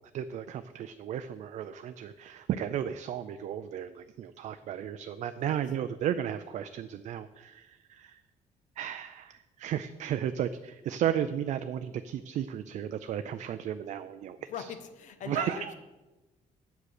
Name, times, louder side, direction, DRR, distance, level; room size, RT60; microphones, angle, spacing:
voice 1, 0.1-8.2 8.8-14.7 15.3-15.7, right 10 dB, 60° right, 10 dB, 0.4 m, -34 dB
voice 2, 14.5-15.7, left 8 dB, 65° left, 9 dB, 1.0 m, -40 dB
8.0 x 7.5 x 6.5 m, 1.1 s
cardioid pair, 160°, 14 cm